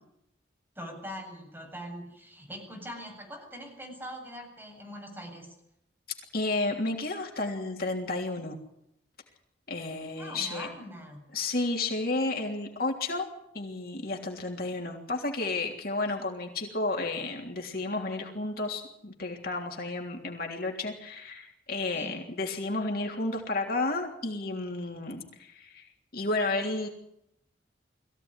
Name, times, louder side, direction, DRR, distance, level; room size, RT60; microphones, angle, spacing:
voice 1, 0.7-5.5 10.2-11.2 21.9-22.2, equal, 10° right, 0 dB, 7.9 m, -42 dB
voice 2, 6.3-8.6 9.7-10.7 11.3-13.3 13.5-25.9 26.1-26.9, left 2 dB, 55° left, 2 dB, 3.3 m, -32 dB
22.0 x 16.0 x 9.8 m, 0.79 s
head